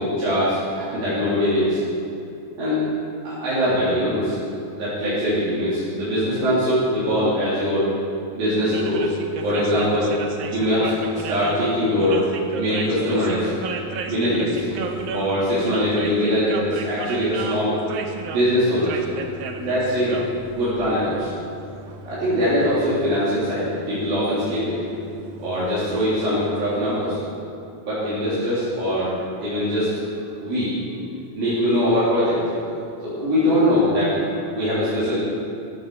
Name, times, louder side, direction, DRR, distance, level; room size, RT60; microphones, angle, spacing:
voice 1, 0.0-1.8 2.6-2.8 3.2-4.4 4.7-7.9 8.3-9.1 9.4-10.1 10.5-12.2 12.5-13.5 14.1-14.7 15.1-17.7 18.3-19.0 19.6-20.2 20.5-21.3 22.0-24.8 25.4-27.2 27.8-29.1 29.4-29.9 30.4-32.4 33.0-34.3 34.5-35.2, equal, 75° right, -12 dB, 5.4 m, -22 dB
sound 1, 8.6-27.1, right 4 dB, 90° right, 1.4 m, -34 dB
14.5 x 9.7 x 7.0 m, 2.7 s
omnidirectional pair, 4.2 m